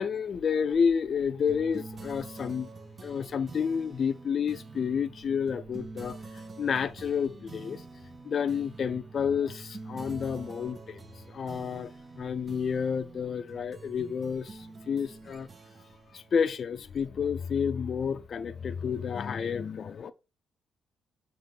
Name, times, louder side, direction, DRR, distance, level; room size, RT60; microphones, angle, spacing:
voice 1, 0.0-2.7 3.0-7.8 8.2-11.0 11.3-11.9 12.2-15.5 16.1-20.1, left 6 dB, 50° left, 0.5 m, -30 dB
sound 1, 1.5-17.3, right 4 dB, 35° right, 0.7 m, -47 dB
6.6 x 3.1 x 5.8 m
cardioid pair, 90°, 0 cm